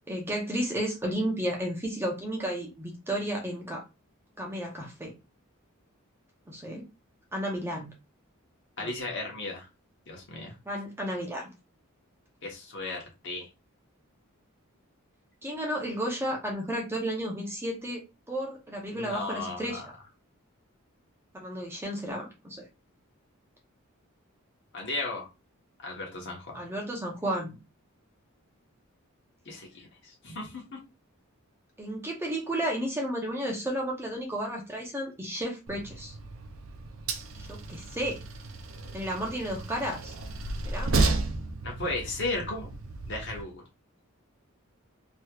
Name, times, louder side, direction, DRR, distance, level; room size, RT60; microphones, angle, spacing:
voice 1, 0.1-3.8 4.4-5.1 6.5-6.8 7.3-7.9 8.8-8.9 10.7-11.5 15.4-18.0 18.3-19.8 21.3-22.6 26.5-27.6 31.8-36.1 37.4-38.2 38.9-40.1 40.7-40.9, right 1 dB, 10° right, -1 dB, 0.8 m, -32 dB
voice 2, 8.8-9.7 10.1-10.5 12.4-13.5 18.9-19.8 24.7-25.3 25.8-26.6 29.4-30.8 41.6-42.7 43.1-43.6, left 2 dB, 55° left, 0 dB, 1.2 m, -35 dB
Train, 35.7-43.4, right 3 dB, 65° right, 0.5 m, -33 dB
3.2 x 3.0 x 2.3 m, 0.26 s
head